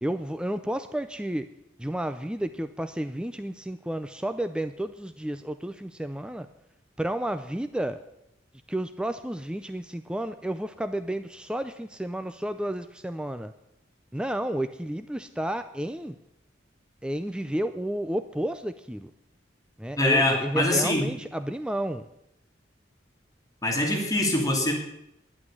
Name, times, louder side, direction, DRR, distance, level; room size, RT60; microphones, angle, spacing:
voice 1, 0.0-1.5 1.8-6.5 7.0-8.0 8.7-13.5 14.1-16.2 17.0-19.1 19.8-22.1, right 1 dB, 5° right, 10 dB, 0.5 m, -31 dB
voice 2, 20.0-21.1 23.6-24.7, left 1 dB, 20° left, 0 dB, 2.7 m, -24 dB
11.0 x 8.8 x 9.7 m, 0.81 s
head